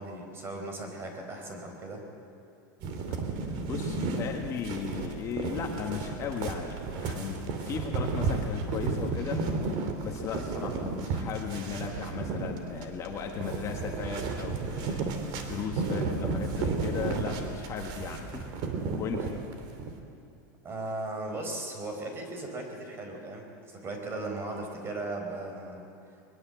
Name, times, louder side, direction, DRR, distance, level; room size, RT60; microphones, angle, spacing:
voice 1, 0.0-2.0 20.6-25.9, right 2 dB, 25° right, 3 dB, 4.5 m, -37 dB
sound 1, 2.8-19.9, right 4 dB, 45° right, 2.8 m, -33 dB
voice 2, 3.4-9.6 10.0-18.5 19.0-19.3, left 6 dB, 30° left, 2 dB, 1.8 m, -36 dB
21.5 x 21.5 x 7.9 m, 2.7 s
supercardioid pair, 150°, 10 cm